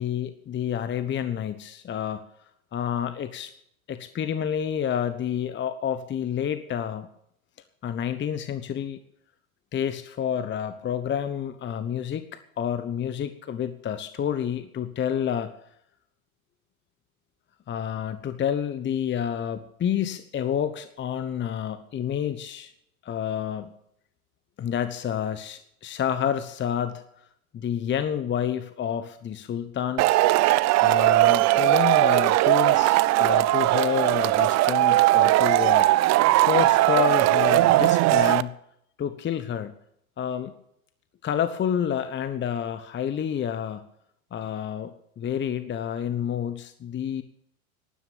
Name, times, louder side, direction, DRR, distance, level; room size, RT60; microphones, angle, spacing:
voice 1, 0.0-2.3 2.7-3.5 3.9-7.1 7.8-9.0 9.7-15.5 17.7-22.7 23.0-23.7 24.6-27.0 27.5-30.4 30.8-35.9 36.3-38.5 39.0-39.7 40.2-40.5 41.2-43.9 44.3-47.2, left 9 dB, 25° left, 11 dB, 1.0 m, -29 dB
Male speech man speaking / Shout / Clapping, 30.0-38.4, right 17 dB, 40° right, 0.6 m, -19 dB
12.0 x 11.5 x 8.5 m, 0.74 s
hypercardioid pair, 95°, 43 cm